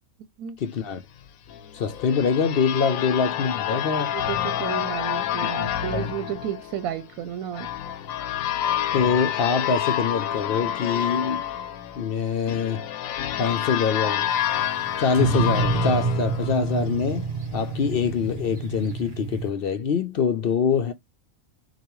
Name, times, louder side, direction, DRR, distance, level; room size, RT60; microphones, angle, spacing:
voice 1, 0.6-1.0 1.7-4.1 5.4-6.1 8.9-11.4 12.0-12.8 13.4-14.3 15.0-17.3 17.5-20.9, left 6 dB, 60° left, 0.6 m, -24 dB
sound 1, 1.5-17.2, left 10 dB, 85° left, 1.0 m, -28 dB
voice 2, 4.0-7.7, right 10 dB, 85° right, 1.1 m, -32 dB
sound 2, 14.3-19.5, right 4 dB, 45° right, 0.8 m, -28 dB
6.7 x 2.3 x 3.0 m
omnidirectional pair, 1.4 m